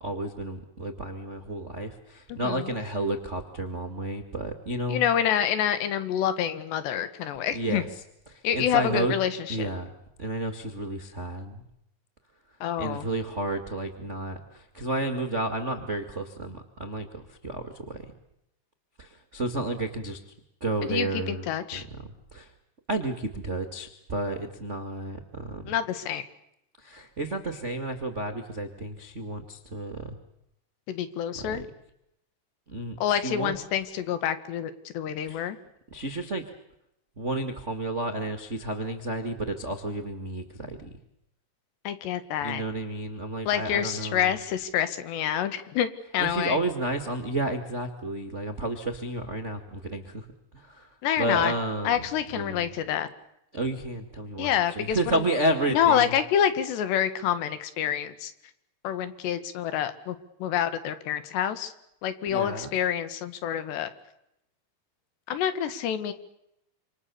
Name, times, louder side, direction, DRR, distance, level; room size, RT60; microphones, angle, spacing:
voice 1, 0.0-5.0 7.5-7.9 8.3-9.1 9.5-9.9 10.2-11.6 12.8-18.0 19.0-20.2 20.6-21.4 21.7-22.5 22.9-25.7 26.8-30.2 31.3-31.6 32.7-33.0 33.2-33.5 35.3-35.5 35.9-36.4 37.2-40.9 42.4-44.3 46.2-50.2 50.5-50.9 51.2-52.0 52.3-52.7 53.5-56.2 62.3-62.7, right 1 dB, 55° right, 6 dB, 0.7 m, -31 dB
voice 2, 2.3-2.7 4.9-7.8 8.4-9.7 12.6-13.1 20.9-21.8 25.7-26.2 30.9-31.6 33.0-35.6 41.9-42.6 43.5-46.6 51.0-51.5 51.9-53.1 54.4-55.2 55.7-58.3 58.8-61.7 62.0-63.9 65.3-66.1, left 9 dB, 85° left, 11 dB, 3.9 m, -27 dB
27.5 x 27.0 x 7.0 m, 0.82 s
omnidirectional pair, 4.8 m